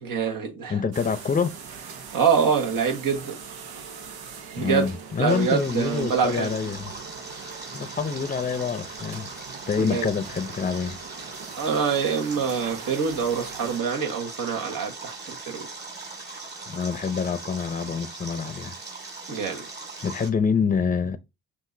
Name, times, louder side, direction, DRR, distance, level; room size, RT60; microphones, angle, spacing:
voice 1, 0.0-0.8 2.1-3.4 4.5-4.9 5.2-6.5 9.7-10.1 11.6-15.7 19.3-19.6, right 6 dB, 65° right, 1.6 m, -25 dB
voice 2, 0.7-1.5 4.6-6.9 7.7-9.3 9.7-11.0 16.7-18.7 20.0-21.2, left 6 dB, 25° left, 0.7 m, -26 dB
sound 1, 0.9-13.8, right 6 dB, 85° right, 1.1 m, -42 dB
Stream, 5.3-20.3, right 3 dB, 30° right, 2.0 m, -40 dB
5.9 x 2.7 x 2.7 m
cardioid pair, 90°, 36 cm